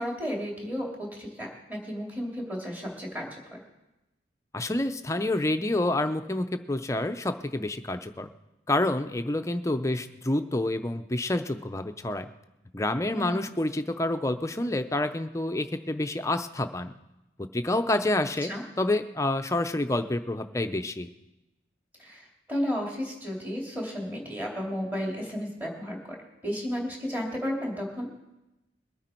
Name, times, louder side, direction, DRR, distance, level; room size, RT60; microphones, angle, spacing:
voice 1, 0.0-3.6 13.1-13.5 18.5-18.6 22.0-26.2 26.4-28.1, equal, 10° right, -1 dB, 2.9 m, -33 dB
voice 2, 4.5-8.3 8.7-12.3 12.7-16.9 17.4-21.1, left 1 dB, 15° left, 8 dB, 0.6 m, -28 dB
21.5 x 9.3 x 4.4 m, 0.96 s
head